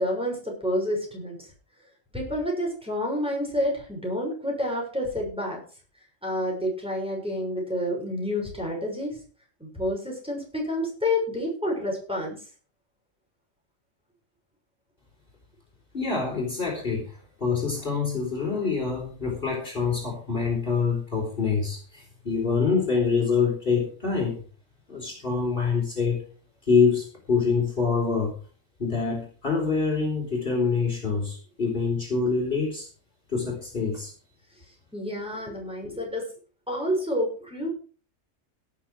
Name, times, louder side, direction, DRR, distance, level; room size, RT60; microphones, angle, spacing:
voice 1, 0.0-1.5 2.1-5.6 6.2-9.2 9.6-12.4 34.9-36.3 36.7-37.7, left 1 dB, 5° right, -2 dB, 6.4 m, -29 dB
voice 2, 15.9-17.1 17.4-24.4 24.9-26.2 26.7-28.3 28.8-32.9 33.3-34.1, left 5 dB, 45° left, -1 dB, 4.4 m, -25 dB
17.5 x 7.1 x 5.0 m, 0.39 s
omnidirectional pair, 1.3 m